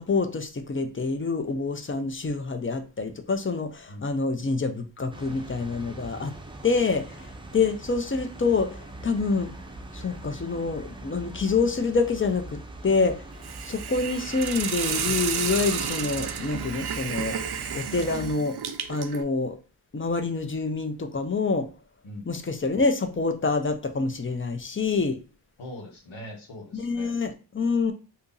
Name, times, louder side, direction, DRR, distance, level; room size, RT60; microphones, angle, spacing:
voice 1, 0.0-6.3 6.6-9.5 9.9-13.2 13.6-18.6 18.9-19.6 19.9-21.7 22.3-25.2 26.7-27.9, left 4 dB, 25° left, 0.5 m, -27 dB
voice 2, 3.9-4.2 22.0-22.3 25.6-27.1, left 1 dB, 80° left, 1.2 m, -42 dB
sound 1, 5.1-18.3, right 2 dB, 10° right, 0.6 m, -42 dB
Hiss, 13.4-19.2, right 7 dB, 55° right, 0.6 m, -31 dB
2.7 x 2.6 x 3.8 m
cardioid pair, 65°, 46 cm